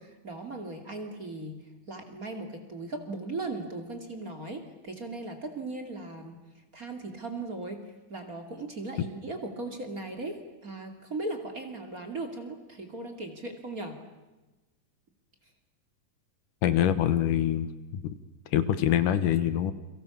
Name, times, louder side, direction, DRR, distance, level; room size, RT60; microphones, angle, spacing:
voice 1, 0.0-1.6 1.9-6.4 6.7-7.8 8.1-14.0, right 2 dB, 30° right, 5 dB, 2.6 m, -38 dB
voice 2, 16.6-18.1 18.5-19.7, left 10 dB, 75° left, 13 dB, 2.7 m, -25 dB
29.5 x 23.5 x 7.2 m, 1.1 s
omnidirectional pair, 3.8 m